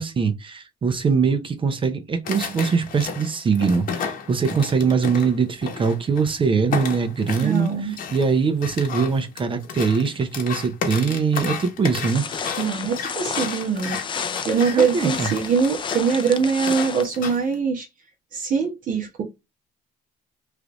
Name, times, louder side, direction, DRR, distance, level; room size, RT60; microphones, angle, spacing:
voice 1, 0.0-7.7 8.1-12.3 14.7-15.3, right 5 dB, 30° right, 0.6 m, -22 dB
sound 1, 2.2-6.3 6.7-17.5, left 6 dB, 55° left, 1.0 m, -33 dB
voice 2, 7.4-8.0 12.6-17.9 18.3-19.2, right 6 dB, 55° right, 1.0 m, -23 dB
sound 2, 12.0-17.0, left 6 dB, 30° left, 0.4 m, -31 dB
3.2 x 2.5 x 2.9 m
cardioid pair, 110°, 17 cm